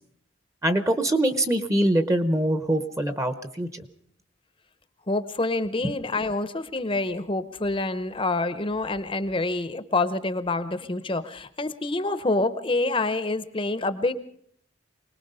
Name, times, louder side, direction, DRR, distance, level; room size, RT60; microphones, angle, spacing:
voice 1, 0.6-3.8 5.8-5.9, right 1 dB, 15° right, 10 dB, 0.8 m, -24 dB
voice 2, 5.1-14.1, left 2 dB, 25° left, 12 dB, 0.7 m, -27 dB
25.5 x 19.5 x 5.5 m, 0.65 s
head